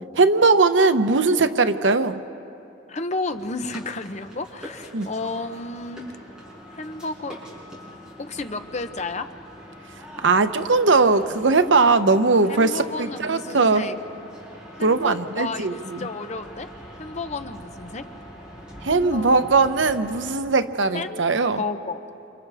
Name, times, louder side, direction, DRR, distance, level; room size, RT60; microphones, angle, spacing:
voice 1, 0.2-2.2 4.9-5.1 10.2-13.8 14.8-16.0 18.8-21.6, right 3 dB, 80° right, 9 dB, 0.9 m, -19 dB
voice 2, 2.9-6.1 6.7-7.4 8.2-9.3 12.5-14.0 14.7-16.7 17.0-18.0 18.8-19.5 20.9-21.3 21.6-22.0, left 3 dB, 40° left, 9 dB, 0.8 m, -32 dB
sound 1, 3.3-20.3, equal, 5° right, 6.1 m, -43 dB
29.0 x 28.0 x 3.5 m, 2.7 s
head